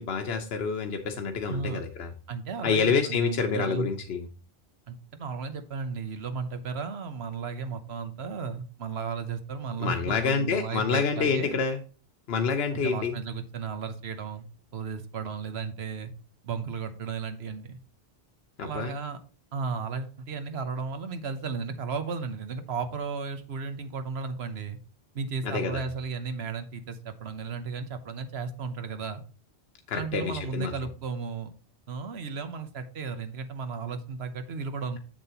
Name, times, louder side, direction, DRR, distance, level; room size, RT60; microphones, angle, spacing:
voice 1, 0.0-2.1 2.6-4.3 9.8-11.8 12.3-13.2 18.6-18.9 25.4-25.8 29.9-30.7, left 5 dB, 75° left, 4 dB, 1.0 m, -27 dB
voice 2, 1.5-1.8 2.3-3.9 4.9-11.6 12.7-14.5 14.7-16.1 16.4-17.8 18.6-19.2 19.5-24.8 25.1-29.2 29.9-31.5 31.9-35.0, right 5 dB, 85° right, 9 dB, 1.2 m, -34 dB
7.4 x 7.2 x 2.9 m, 0.38 s
omnidirectional pair, 1.0 m